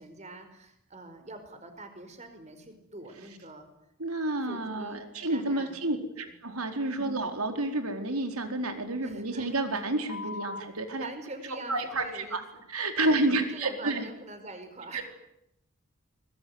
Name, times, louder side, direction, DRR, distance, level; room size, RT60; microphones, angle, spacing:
voice 1, 0.0-3.7 4.4-6.0 6.2-6.3 6.9-7.2 9.0-9.5 11.0-12.6 13.0-15.0, right 2 dB, 30° right, 8 dB, 4.9 m, -45 dB
voice 2, 4.0-11.1 11.7-14.0 14.9-15.0, right 2 dB, 90° right, 6 dB, 4.5 m, -30 dB
sound 1, 8.3-8.4 8.7-8.8 10.1-10.6 11.7-12.2 13.0-13.2, left 4 dB, 85° left, 2.5 m, -41 dB
26.0 x 21.0 x 9.7 m, 0.83 s
head